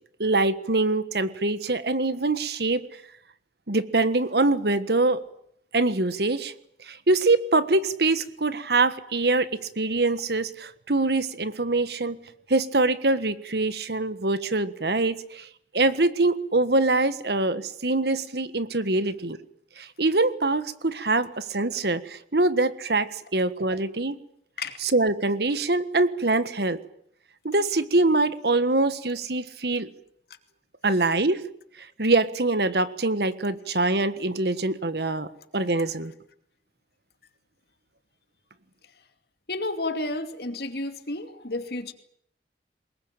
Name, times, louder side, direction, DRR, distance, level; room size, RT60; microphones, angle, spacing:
voice 1, 0.2-2.9 3.7-5.2 5.7-6.5 6.9-9.5 9.8-12.2 12.5-15.5 15.7-19.4 19.8-24.2 24.8-26.8 27.4-29.9 30.8-31.4 32.0-35.3 35.5-36.1, right 2 dB, 65° right, 13 dB, 1.5 m, -24 dB
voice 2, 39.5-41.9, left 2 dB, 65° left, 8 dB, 2.6 m, -31 dB
23.5 x 21.0 x 9.1 m, 0.70 s
head